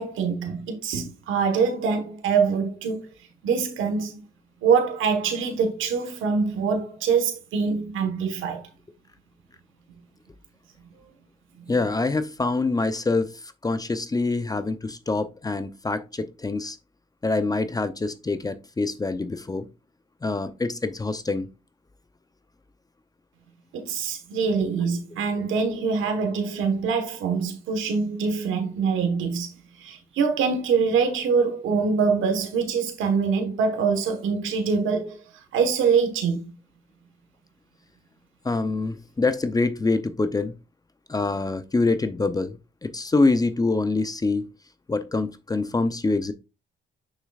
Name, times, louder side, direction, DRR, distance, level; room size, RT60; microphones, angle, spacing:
voice 1, 0.0-3.1 3.4-4.2 4.6-8.6 23.7-29.5 29.8-35.2 35.5-36.4, right 5 dB, 80° right, 1.3 m, -24 dB
voice 2, 11.7-16.8 17.2-19.7 20.2-21.5 38.4-40.5 41.1-42.5 42.8-44.5 44.9-46.3, left 3 dB, 20° left, 0.6 m, -25 dB
6.5 x 6.0 x 2.4 m
cardioid pair, 90°, 20 cm